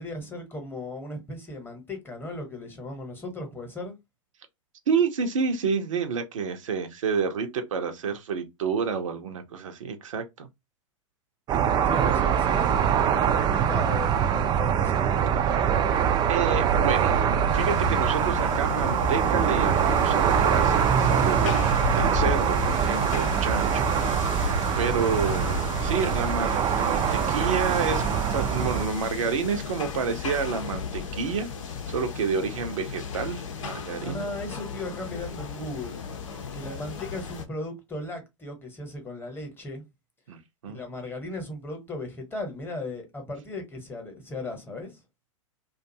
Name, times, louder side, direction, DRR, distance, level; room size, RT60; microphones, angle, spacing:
voice 1, 0.0-3.9 11.8-15.6 34.0-36.0 36.5-39.8 40.7-45.0, left 2 dB, 15° left, 1.0 m, -37 dB
voice 2, 4.9-10.5 16.3-17.2 17.5-23.8 24.2-31.5 31.9-34.3 40.3-40.8, right 5 dB, 75° right, 0.7 m, -29 dB
sound 1, 11.5-28.9, right 8 dB, 25° right, 0.4 m, -24 dB
sound 2, 17.5-37.4, left 7 dB, 75° left, 0.7 m, -34 dB
2.5 x 2.3 x 2.6 m
hypercardioid pair, 105°, 17 cm